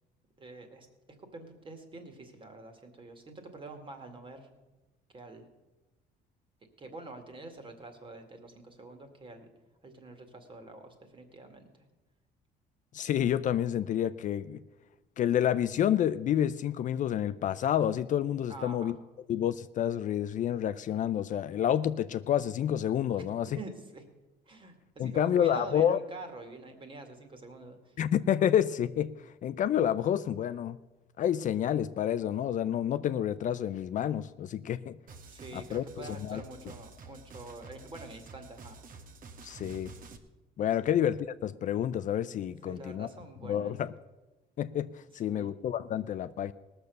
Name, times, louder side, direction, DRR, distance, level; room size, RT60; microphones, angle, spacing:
voice 1, 0.4-0.9 1.2-4.5 5.1-5.5 6.8-9.5 9.8-11.8 18.5-19.0 23.2-24.0 24.5-28.0 35.2-38.8 40.8-41.0 42.6-43.8 45.3-45.5, right 2 dB, 30° right, 2.1 m, -46 dB
voice 2, 12.9-14.6 15.2-19.0 19.3-23.5 25.0-26.0 28.0-30.8 31.2-35.0 35.5-36.4 39.4-39.9 40.6-43.1 43.4-43.9 44.6-46.5, left 10 dB, 50° left, 0.4 m, -29 dB
sound 1, 35.1-40.2, right 3 dB, 55° right, 1.3 m, -49 dB
18.0 x 6.7 x 6.6 m
cardioid pair, 110°, 17 cm